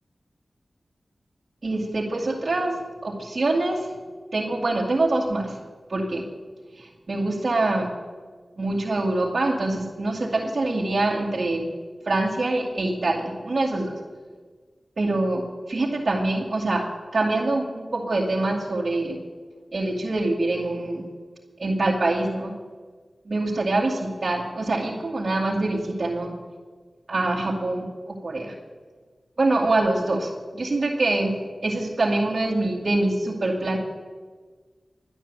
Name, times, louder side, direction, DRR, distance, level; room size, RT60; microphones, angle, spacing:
voice 1, 1.6-3.9 4.3-5.6 5.9-6.3 6.8-7.9 8.6-11.7 12.0-14.0 15.0-16.8 17.1-19.2 19.7-21.0 21.6-22.6 23.3-26.3 27.1-28.5 29.4-31.4 31.6-33.8, right 2 dB, 65° right, -5 dB, 2.3 m, -25 dB
12.0 x 10.0 x 8.2 m, 1.5 s
cardioid pair, 40°, 0 cm